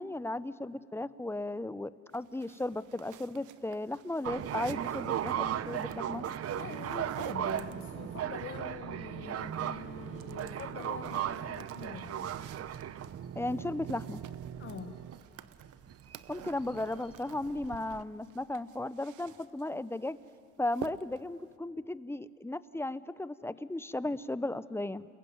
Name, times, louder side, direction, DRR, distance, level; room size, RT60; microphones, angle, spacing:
voice 1, 0.0-6.3 13.3-14.2 16.3-20.2 20.6-25.1, left 2 dB, 10° left, 15 dB, 0.7 m, -35 dB
sound 1, 2.1-8.2 9.3-9.8 10.1-18.0 18.2-19.7 20.1-20.4 20.7-21.3, right 12 dB, 80° right, 0.9 m, -49 dB
sound 2, 4.2-18.0, right 10 dB, 50° right, 0.8 m, -37 dB
voice 2, 6.5-12.3 14.6-15.0, left 6 dB, 45° left, 5 dB, 1.5 m, -45 dB
29.0 x 21.5 x 9.3 m, 2.3 s
cardioid pair, 90°, 30 cm